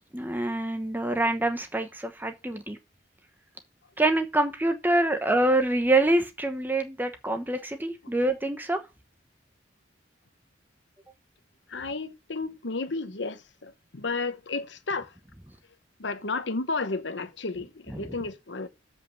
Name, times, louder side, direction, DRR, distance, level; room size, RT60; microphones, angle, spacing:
voice 1, 0.1-2.8 4.0-8.8 17.9-18.1, right 2 dB, 10° right, 1.0 m, -26 dB
voice 2, 11.7-15.1 16.0-18.7, left 3 dB, 70° left, 1.1 m, -32 dB
7.5 x 5.3 x 7.3 m
head